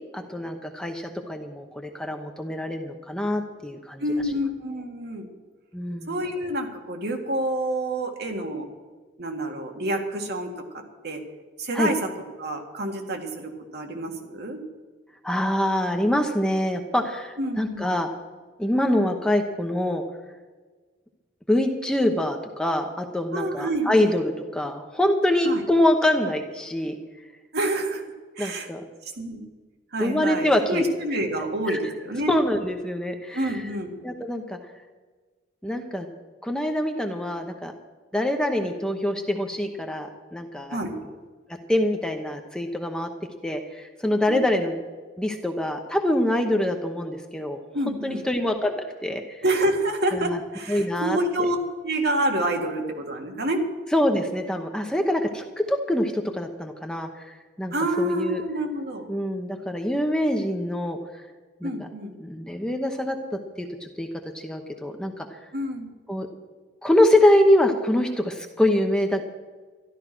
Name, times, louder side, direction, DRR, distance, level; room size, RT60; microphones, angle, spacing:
voice 1, 0.1-4.0 5.7-6.1 11.7-11.9 15.2-18.1 18.6-20.0 21.5-24.2 24.5-26.9 28.4-28.8 30.0-30.8 31.7-31.8 32.3-33.5 34.0-34.6 35.6-36.1 36.4-37.7 38.1-40.8 41.7-43.1 43.4-44.7 45.2-47.6 48.0-49.4 50.1-50.2 50.7-51.2 53.9-58.4 59.1-61.0 61.6-61.7 62.2-63.2 63.6-64.1 64.4-65.3 66.1-66.3 66.8-69.2, left 1 dB, 5° left, 4 dB, 0.9 m, -24 dB
voice 2, 4.0-5.3 6.1-8.7 9.2-11.2 11.6-12.1 12.4-14.6 17.4-17.9 23.3-24.2 25.4-25.6 27.5-28.0 28.4-28.7 29.2-29.4 29.9-32.3 33.3-33.9 40.7-40.9 44.3-44.5 47.7-48.3 49.4-51.6 51.8-53.6 57.7-59.1 61.6-62.2 65.5-65.9, right 1 dB, 55° right, 3 dB, 2.0 m, -28 dB
13.0 x 11.5 x 6.1 m, 1.4 s
head